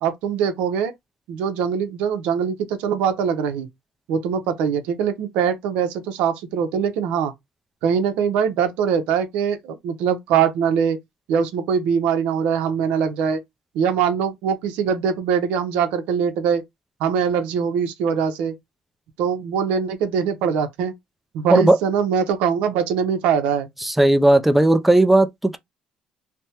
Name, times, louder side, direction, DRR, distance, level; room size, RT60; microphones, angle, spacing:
voice 1, 0.0-0.9 1.3-3.7 4.1-7.3 7.8-11.0 11.3-13.4 13.7-16.6 17.0-18.6 19.2-20.9 21.3-23.7, right 7 dB, 85° right, 0.7 m, -22 dB
voice 2, 23.8-25.6, right 1 dB, 5° right, 0.3 m, -16 dB
3.3 x 2.1 x 2.8 m
cardioid pair, 120°, 2 cm